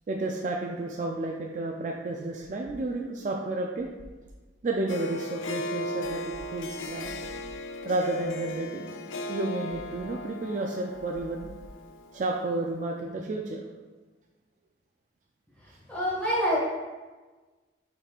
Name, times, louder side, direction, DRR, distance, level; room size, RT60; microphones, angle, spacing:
voice 1, 0.1-3.9 4.6-7.1 7.8-8.9 9.3-11.5 12.1-13.6, right 2 dB, 40° right, 0 dB, 0.3 m, -31 dB
Harp, 4.9-12.4, left 1 dB, 90° left, 0.4 m, -37 dB
voice 2, 15.9-16.6, equal, 5° left, -7 dB, 1.4 m, -26 dB
5.1 x 4.3 x 2.4 m, 1.3 s
head